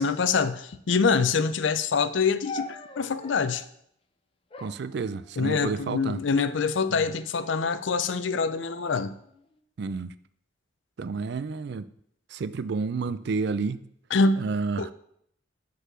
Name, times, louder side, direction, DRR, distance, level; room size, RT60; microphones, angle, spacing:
voice 1, 0.0-3.6 5.4-9.1 14.1-14.5 14.8-14.9, left 4 dB, 70° left, 0.5 m, -25 dB
sound 1, 2.4-3.7 4.5-5.7 6.5-7.0 7.3-7.9 8.6-9.6, left 2 dB, 30° left, 0.7 m, -43 dB
voice 2, 4.6-6.2 6.9-7.1 9.8-10.1 11.0-11.9 12.3-13.8 14.4-14.9, right 4 dB, 60° right, 0.4 m, -30 dB
8.1 x 4.1 x 6.0 m
head